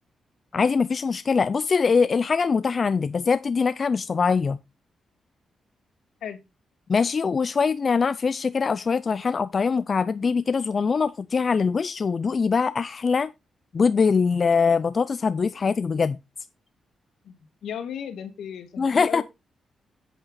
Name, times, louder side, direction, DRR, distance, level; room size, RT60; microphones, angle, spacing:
voice 1, 0.5-4.6 6.9-13.3 13.7-16.2 18.8-19.2, left 5 dB, 40° left, 0.4 m, -23 dB
voice 2, 17.6-19.2, left 8 dB, 80° left, 2.2 m, -35 dB
8.3 x 8.0 x 4.0 m
cardioid pair, 110°, 0 cm